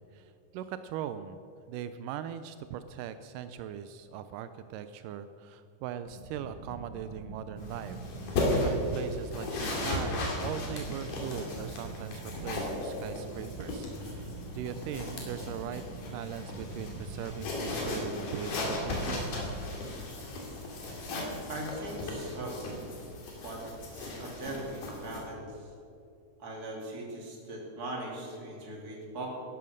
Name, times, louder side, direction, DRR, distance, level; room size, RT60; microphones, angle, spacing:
voice 1, 0.0-1.4 1.7-8.0 8.3-15.8 16.1-19.3, right 9 dB, 85° right, 11 dB, 2.2 m, -40 dB
sound 1, 6.1-19.8, right 2 dB, 55° right, 3.1 m, -45 dB
sound 2, 7.6-25.2, left 2 dB, 75° left, 4.0 m, -36 dB
voice 2, 21.5-22.7 23.4-25.5 26.4-29.3, right 1 dB, 30° right, -1 dB, 2.7 m, -40 dB
13.0 x 11.5 x 6.5 m, 2.5 s
omnidirectional pair, 3.8 m